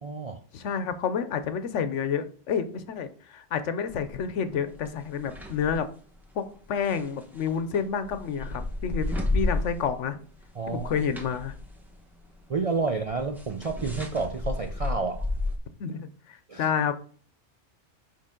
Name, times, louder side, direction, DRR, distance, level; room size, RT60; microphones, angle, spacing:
voice 1, 0.0-0.4 10.5-10.9 12.5-15.2 16.5-16.7, right 4 dB, 50° right, 5 dB, 0.4 m, -30 dB
voice 2, 0.5-5.9 6.3-10.2 10.7-11.5 15.8-16.9, left 7 dB, 70° left, 11 dB, 1.0 m, -29 dB
sound 1, 3.9-4.2 4.7-5.8 6.8-10.1 10.4-15.6, left 2 dB, ahead, 0.9 m, -32 dB
6.6 x 5.5 x 3.7 m, 0.43 s
omnidirectional pair, 1.3 m